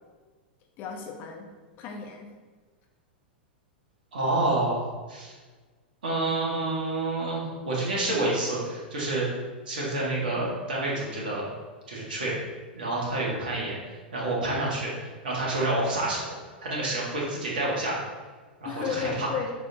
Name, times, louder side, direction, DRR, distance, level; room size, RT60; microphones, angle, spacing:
voice 1, 0.8-1.5 1.8-2.3 18.6-19.5, left 7 dB, 35° left, 2 dB, 1.1 m, -34 dB
voice 2, 4.1-5.3 6.0-9.3 9.7-11.5 11.9-12.3 12.7-13.8 14.1-16.2 16.6-18.0 18.6-19.3, right 2 dB, 60° right, -5 dB, 1.9 m, -28 dB
7.5 x 5.0 x 2.9 m, 1.4 s
figure-of-eight pair, 95°, 6 cm